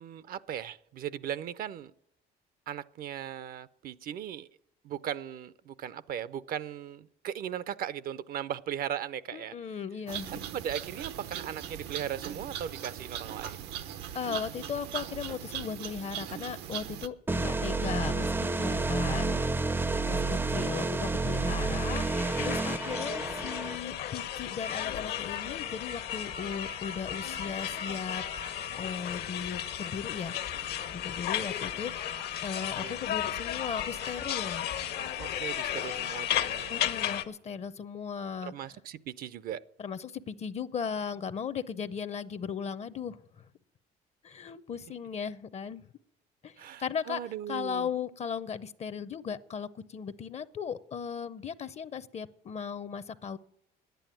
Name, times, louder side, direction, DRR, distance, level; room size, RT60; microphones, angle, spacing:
voice 1, 0.0-1.9 2.7-4.5 4.8-9.5 10.3-13.7 19.9-20.6 32.8-33.0 35.2-36.9 38.4-39.6 46.6-47.9, right 10 dB, 60° right, 17 dB, 0.5 m, -38 dB
voice 2, 9.3-10.3 14.1-18.3 18.6-19.4 20.1-22.0 22.4-28.2 28.8-30.3 30.9-31.9 32.4-34.7 36.7-38.5 39.8-43.5 44.2-45.8 46.4-47.2 47.5-53.4, left 7 dB, 40° left, 15 dB, 0.6 m, -37 dB
sound 1, 10.1-17.1, right 10 dB, 90° right, 0.9 m, -39 dB
sound 2, 17.3-23.8, right 3 dB, 15° right, 0.4 m, -30 dB
sound 3, 21.4-37.2, left 10 dB, 75° left, 1.1 m, -34 dB
10.5 x 9.2 x 9.0 m, 0.75 s
cardioid pair, 110°, 17 cm